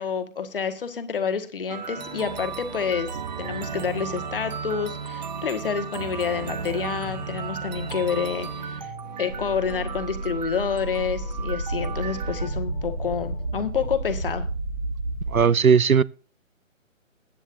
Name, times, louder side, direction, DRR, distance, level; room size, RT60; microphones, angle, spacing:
voice 1, 0.0-3.1 3.4-8.9 9.2-14.5, left 6 dB, 40° left, 1.5 m, -28 dB
sound 1, 1.7-12.5, right 6 dB, 30° right, 1.0 m, -35 dB
sound 2, 2.0-13.5, left 1 dB, 10° left, 1.1 m, -44 dB
sound 3, 9.3-15.4, right 2 dB, 65° right, 5.1 m, -31 dB
voice 2, 15.3-16.0, right 6 dB, 90° right, 0.6 m, -17 dB
21.5 x 9.0 x 2.6 m
figure-of-eight pair, 145°, 41 cm